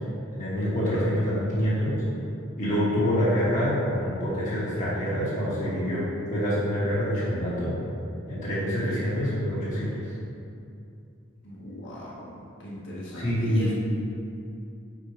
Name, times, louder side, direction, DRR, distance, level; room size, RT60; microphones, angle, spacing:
voice 1, 0.3-2.0 2.6-7.7 8.3-9.9 13.1-13.7, equal, 40° left, -9 dB, 1.4 m, -26 dB
voice 2, 11.4-12.1 12.6-13.7, equal, 60° left, -6 dB, 1.4 m, -38 dB
4.8 x 4.4 x 4.8 m, 2.5 s
head